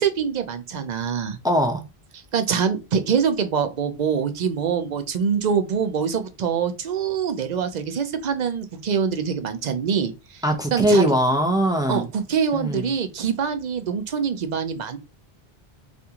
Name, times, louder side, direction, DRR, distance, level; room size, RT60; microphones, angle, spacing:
voice 1, 0.0-1.4 2.3-10.4 10.7-11.1 11.9-15.0, right 7 dB, 55° right, 0.6 m, -24 dB
voice 2, 1.4-1.8 10.4-12.1 12.5-12.9, equal, 5° right, 0.4 m, -21 dB
3.6 x 2.5 x 2.8 m
omnidirectional pair, 1.1 m